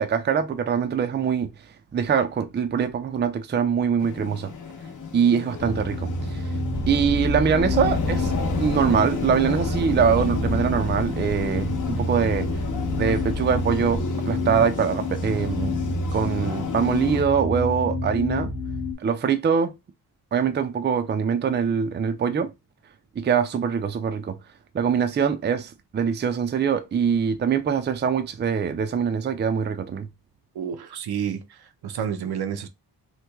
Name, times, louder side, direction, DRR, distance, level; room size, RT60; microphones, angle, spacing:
voice 1, 0.0-1.5 1.9-4.5 5.1-6.4 6.9-8.3 8.6-12.5 13.0-15.8 16.1-18.5 19.0-19.7 20.3-22.5 23.2-24.4 24.7-30.1, right 7 dB, 30° right, 0.4 m, -23 dB
sound 1, 4.0-17.2, left 5 dB, 50° left, 0.8 m, -33 dB
sound 2, 5.6-18.9, left 1 dB, 35° left, 1.1 m, -29 dB
sound 3, 6.7-14.1, left 1 dB, 10° left, 0.8 m, -35 dB
voice 2, 30.5-32.7, right 8 dB, 70° right, 0.7 m, -30 dB
3.1 x 2.2 x 3.4 m
wide cardioid pair, 120°, 39 cm